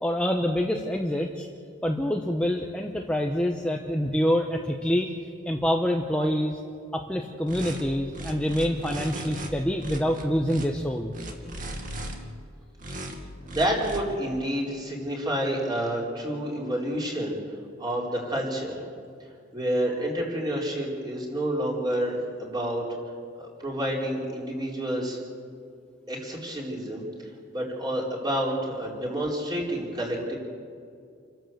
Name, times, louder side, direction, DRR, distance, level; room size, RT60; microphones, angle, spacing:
voice 1, 0.0-1.5 1.8-5.1 5.5-6.6 6.9-11.1, equal, 5° left, 1 dB, 1.0 m, -26 dB
sound 1, 7.5-7.8 8.1-9.5 9.8-10.7 11.1-12.1 12.8-13.1 13.5-14.0, right 1 dB, 40° right, 2.3 m, -36 dB
voice 2, 13.4-17.4 17.8-18.8 19.5-22.9 23.4-25.2 26.1-27.0 27.5-30.4, right 1 dB, 20° right, -2 dB, 4.3 m, -29 dB
28.5 x 12.0 x 7.9 m, 2.3 s
head